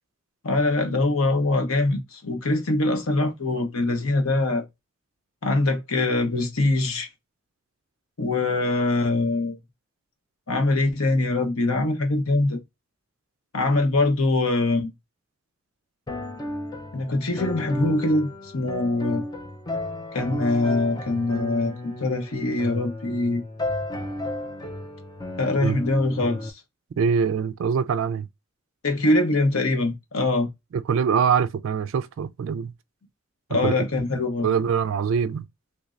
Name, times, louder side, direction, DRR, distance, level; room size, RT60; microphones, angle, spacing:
voice 1, 0.4-4.6 5.4-7.1 8.2-9.6 10.5-12.6 13.5-14.9 16.9-19.2 20.1-23.4 25.4-26.5 28.8-30.5 33.5-34.5, left 2 dB, 90° left, 0.9 m, -23 dB
sound 1, 16.1-26.5, left 1 dB, 20° left, 0.5 m, -33 dB
voice 2, 27.0-28.3 30.7-32.7 33.5-33.9 34.4-35.5, right 6 dB, 65° right, 0.3 m, -24 dB
3.3 x 3.0 x 2.4 m
head